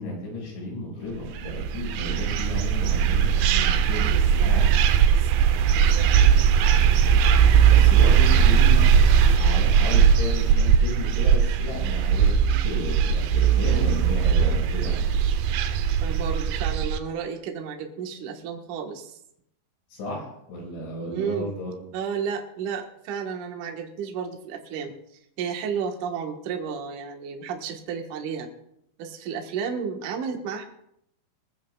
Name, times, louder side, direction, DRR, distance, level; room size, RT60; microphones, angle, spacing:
voice 1, 0.0-4.1 4.4-4.7 7.6-15.1 19.9-21.8, left 2 dB, 85° left, -2 dB, 8.0 m, -34 dB
sound 1, 1.3-17.0, right 8 dB, 90° right, 2.1 m, -19 dB
voice 2, 4.1-4.5 5.0-5.4 5.7-6.4 16.0-19.2 21.1-21.5 21.9-24.9 25.4-28.5 29.0-30.7, right 6 dB, 60° right, 2 dB, 2.4 m, -32 dB
22.0 x 15.0 x 2.4 m, 0.75 s
omnidirectional pair, 5.0 m